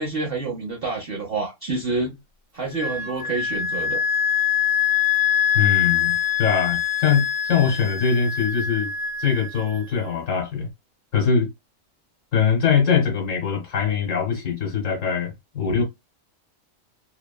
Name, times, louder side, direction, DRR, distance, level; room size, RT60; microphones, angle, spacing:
voice 1, 0.0-2.1 2.5-4.0, right 3 dB, 50° right, 0.9 m, -28 dB
Wind instrument woodwind instrument, 2.7-10.2, left 9 dB, 75° right, 1.3 m, -24 dB
voice 2, 5.5-8.9 9.2-10.7 11.1-11.5 12.3-15.8, left 6 dB, 65° left, 1.2 m, -22 dB
2.9 x 2.1 x 2.2 m
omnidirectional pair, 1.5 m